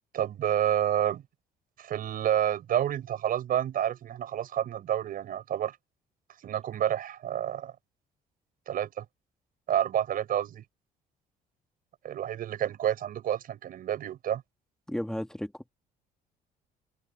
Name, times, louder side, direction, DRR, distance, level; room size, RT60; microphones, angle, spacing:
voice 1, 0.1-1.2 1.8-5.8 6.4-7.7 8.7-9.0 9.7-10.6 12.0-14.4, right 10 dB, 60° right, 4.6 m, -29 dB
voice 2, 14.9-15.7, equal, 5° left, 2.1 m, -34 dB
cardioid pair, 110°, 17 cm